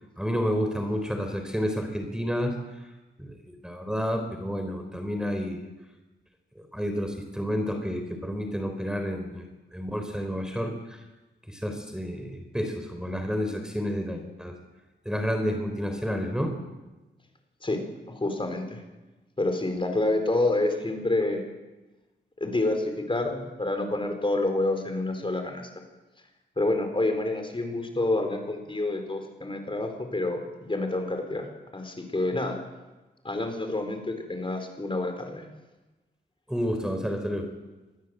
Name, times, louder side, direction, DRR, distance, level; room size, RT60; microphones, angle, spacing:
voice 1, 0.2-2.6 3.2-3.3 3.6-5.6 6.7-9.4 9.7-10.7 11.5-14.6 15.1-16.5 36.5-37.5, equal, 5° right, 5 dB, 3.7 m, -30 dB
voice 2, 18.1-18.8 19.4-21.4 22.4-25.6 26.6-30.4 30.7-31.5 31.7-32.6 33.2-35.4, left 2 dB, 25° left, 5 dB, 4.5 m, -28 dB
26.0 x 21.0 x 7.9 m, 1.1 s
wide cardioid pair, 110°, 19 cm